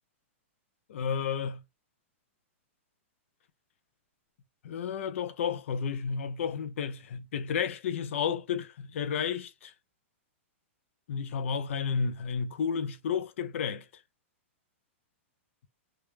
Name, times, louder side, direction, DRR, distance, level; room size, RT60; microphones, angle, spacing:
voice 1, 0.9-1.6 4.6-9.7 11.1-13.9, left 6 dB, 70° left, 0.4 m, -32 dB
2.2 x 2.1 x 3.1 m
hypercardioid pair, 130°, 7 cm